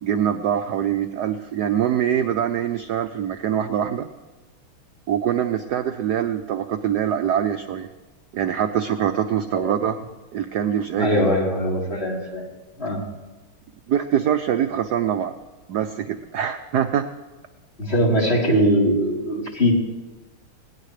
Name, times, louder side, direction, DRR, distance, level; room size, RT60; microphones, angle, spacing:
voice 1, 0.0-4.1 5.1-7.9 8.3-10.0 10.3-11.3 13.9-15.3 15.7-17.1, right 9 dB, 65° right, 8 dB, 1.0 m, -23 dB
voice 2, 11.0-12.4 12.8-13.0 17.8-19.7, equal, 30° left, -4 dB, 4.0 m, -21 dB
20.5 x 18.0 x 3.3 m, 1.2 s
omnidirectional pair, 2.3 m